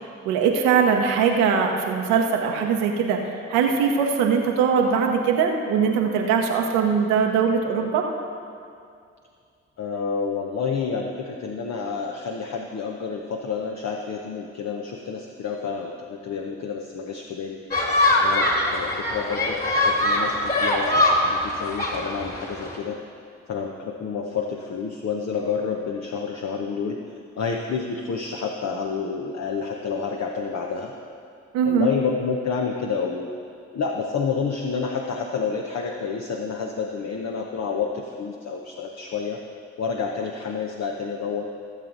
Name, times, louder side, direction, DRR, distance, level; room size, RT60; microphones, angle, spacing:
voice 1, 0.2-8.0 31.5-31.9, right 6 dB, 90° right, 2 dB, 1.0 m, -21 dB
voice 2, 9.8-17.6 18.2-23.0 23.5-30.9 31.7-33.3 33.7-39.4 39.8-41.5, left 5 dB, 55° left, 1 dB, 0.9 m, -29 dB
sound 1, 17.7-22.8, left 1 dB, 30° left, 2.5 m, -22 dB
15.5 x 7.4 x 3.9 m, 2.3 s
hypercardioid pair, 45°, 32 cm